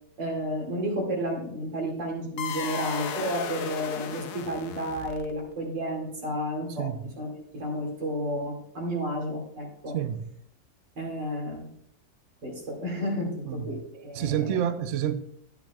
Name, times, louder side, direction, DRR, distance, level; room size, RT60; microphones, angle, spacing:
voice 1, 0.2-10.0 11.0-11.7 12.4-14.6, equal, 90° right, 3.0 m, -32 dB
sound 1, 2.4-5.5, left 8 dB, 70° left, 1.2 m, -35 dB
voice 2, 6.8-7.1 9.9-10.2 13.5-13.7 14.1-15.1, right 10 dB, 65° right, 0.8 m, -28 dB
12.0 x 9.3 x 2.4 m
omnidirectional pair, 1.9 m